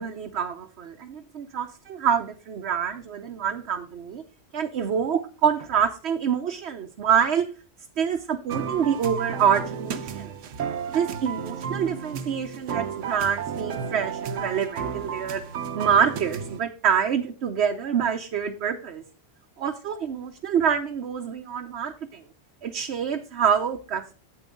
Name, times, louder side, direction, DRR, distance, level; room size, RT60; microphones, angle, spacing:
voice 1, 0.0-4.2 4.5-7.5 8.0-10.3 10.9-15.4 15.7-19.0 19.6-22.2 22.6-24.1, right 7 dB, 60° right, 4 dB, 1.0 m, -26 dB
sound 1, 8.5-16.6, right 7 dB, 80° right, 1.1 m, -33 dB
8.8 x 8.4 x 3.7 m, 0.35 s
omnidirectional pair, 1.3 m